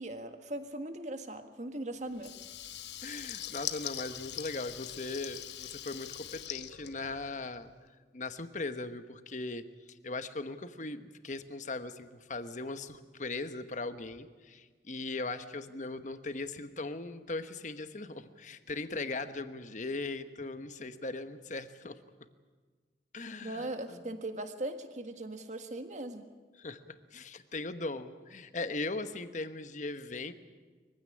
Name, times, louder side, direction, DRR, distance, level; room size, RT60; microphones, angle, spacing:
voice 1, 0.0-2.4 23.4-26.3, right 1 dB, 40° right, 7 dB, 1.7 m, -39 dB
Water tap faucet / Liquid, 2.1-7.7, left 11 dB, 75° left, 1.0 m, -42 dB
voice 2, 3.0-7.7 8.1-22.0 23.1-24.1 26.6-30.3, left 3 dB, 45° left, 10 dB, 1.1 m, -39 dB
23.0 x 15.5 x 9.9 m, 1.4 s
head